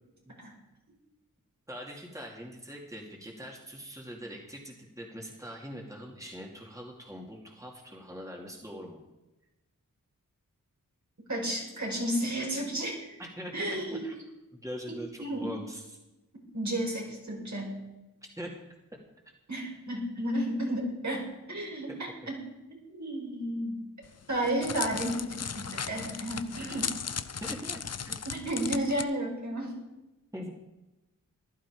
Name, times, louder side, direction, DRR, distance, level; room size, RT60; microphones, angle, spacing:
voice 1, 1.7-9.0 13.2-14.2 14.5-16.0 18.4-18.6 21.9-22.3 27.4-28.2 30.3-30.5, equal, 10° right, -1 dB, 2.5 m, -42 dB
voice 2, 11.3-13.1 13.5-14.0 15.2-15.5 16.5-17.8 19.5-22.4 22.9-23.8 24.3-26.9 28.2-29.7, right 1 dB, 60° right, -2 dB, 5.2 m, -32 dB
Crackle, 24.1-29.0, left 6 dB, 50° left, 0.7 m, -36 dB
15.0 x 11.5 x 4.9 m, 1.0 s
cardioid pair, 45°, 33 cm